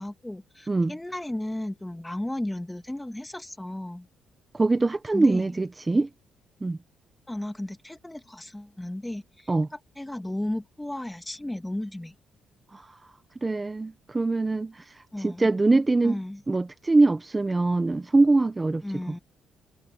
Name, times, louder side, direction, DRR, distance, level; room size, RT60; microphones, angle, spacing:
voice 1, 0.0-4.1 5.1-5.5 7.3-12.1 15.1-15.5 16.0-16.4 18.8-19.2, left 1 dB, 10° left, 1.9 m, -34 dB
voice 2, 4.5-6.1 6.6-6.8 9.5-9.7 12.7-12.9 13.4-14.8 15.2-16.2 16.5-18.8, right 2 dB, 20° right, 1.3 m, -23 dB
cardioid pair, 90°, 0 cm